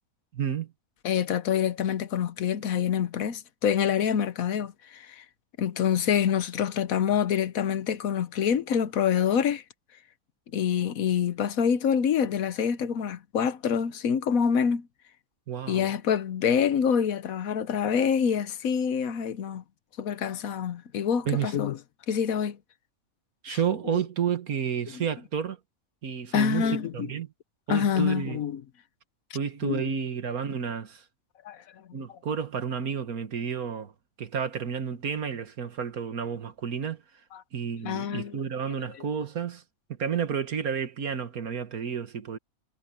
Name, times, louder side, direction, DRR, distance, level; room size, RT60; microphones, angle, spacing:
voice 1, 0.3-0.7 15.5-15.9 21.3-21.5 23.4-25.6 26.0-27.3 27.7-28.4 29.3-31.0 31.9-33.9 34.2-37.0 37.5-39.6 39.9-42.4, right 7 dB, 90° right, 2.0 m, -31 dB
voice 2, 1.0-5.2 5.6-9.6 10.5-14.9 15.7-19.6 20.0-21.8 22.1-22.6 23.5-23.6 24.9-25.0 26.3-27.1 27.7-28.6 29.6-29.8 31.4-31.6 31.9-32.0 37.3-37.4 37.8-38.4, left 8 dB, 75° left, 1.3 m, -26 dB
omnidirectional pair, 1.5 m